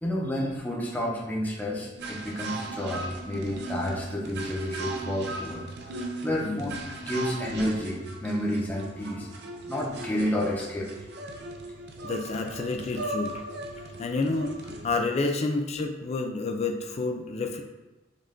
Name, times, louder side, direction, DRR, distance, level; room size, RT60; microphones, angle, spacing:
voice 1, 0.0-10.9 13.9-14.1, left 1 dB, 10° left, -4 dB, 0.8 m, -30 dB
sound 1, 2.0-15.0, right 2 dB, 60° right, 0.5 m, -38 dB
voice 2, 6.4-6.9 12.0-13.4 13.8-17.6, left 3 dB, 35° left, 4 dB, 0.4 m, -30 dB
5.4 x 2.5 x 3.7 m, 1.1 s
head